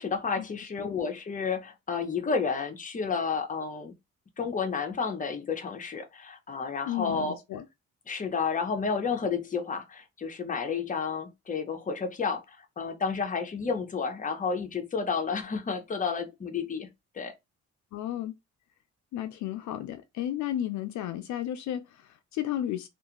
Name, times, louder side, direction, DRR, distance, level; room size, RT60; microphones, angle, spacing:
voice 1, 0.0-3.9 4.4-7.4 8.1-16.9 17.1-17.3, left 5 dB, 25° left, 0.7 m, -31 dB
voice 2, 6.9-7.7 17.9-18.4 19.1-22.9, left 12 dB, 70° left, 0.4 m, -33 dB
2.5 x 2.3 x 2.9 m
cardioid pair, 90°, 30 cm